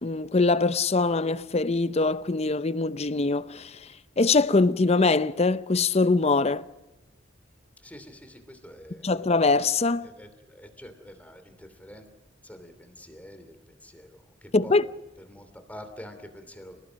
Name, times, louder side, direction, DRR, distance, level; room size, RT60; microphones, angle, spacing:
voice 1, 0.0-3.7 4.2-6.6 9.0-10.1 14.5-14.9, left 3 dB, 35° left, 0.7 m, -23 dB
voice 2, 7.8-9.1 10.0-12.1 12.4-14.8 15.2-16.8, equal, 10° left, 3.0 m, -46 dB
29.5 x 18.5 x 6.4 m
head